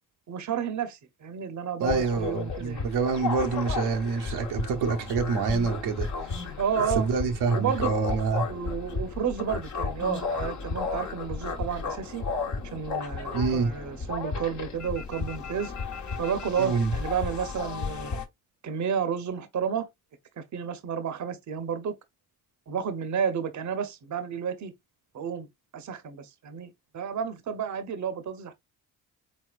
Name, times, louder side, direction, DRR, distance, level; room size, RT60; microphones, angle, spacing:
voice 1, 0.3-2.8 6.6-7.1 7.5-7.9 8.5-12.2 12.7-15.7 16.2-18.1 18.6-19.9 20.4-21.9 22.7-24.7 25.1-25.5 25.7-28.5, right 7 dB, 45° right, 0.9 m, -31 dB
voice 2, 1.8-6.4 7.0-8.5 13.3-13.7 16.6-16.9, right 5 dB, 75° right, 1.0 m, -27 dB
sound 1, 1.9-18.2, left 4 dB, 45° left, 1.2 m, -33 dB
4.3 x 3.8 x 2.4 m
hypercardioid pair, 50°, 41 cm